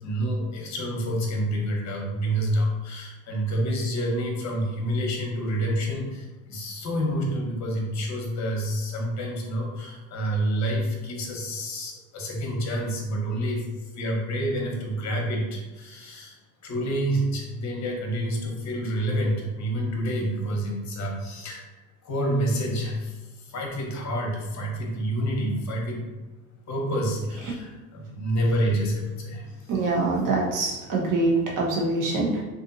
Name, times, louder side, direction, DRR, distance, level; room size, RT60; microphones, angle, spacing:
voice 1, 0.0-16.4 16.6-21.6 22.0-26.0 26.7-29.8, equal, 40° left, 0 dB, 0.9 m, -28 dB
voice 2, 29.7-32.4, right 2 dB, 45° right, -2 dB, 1.0 m, -24 dB
2.6 x 2.5 x 2.6 m, 1.2 s
hypercardioid pair, 75°, 43 cm